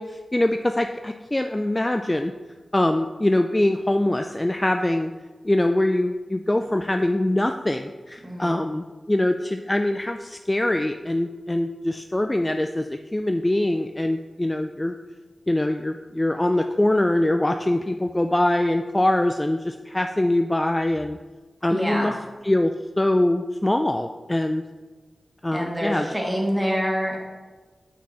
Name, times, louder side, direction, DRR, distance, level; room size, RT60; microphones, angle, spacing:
voice 1, 0.0-2.3 2.7-5.1 5.4-14.9 15.5-21.2 21.6-22.1 22.4-24.6 25.4-26.1, left 1 dB, 20° left, 6 dB, 0.3 m, -23 dB
voice 2, 8.2-8.6 21.7-22.1 25.5-27.2, equal, 10° right, -2 dB, 1.8 m, -26 dB
5.9 x 4.3 x 4.2 m, 1.3 s
cardioid pair, 45°, 0 cm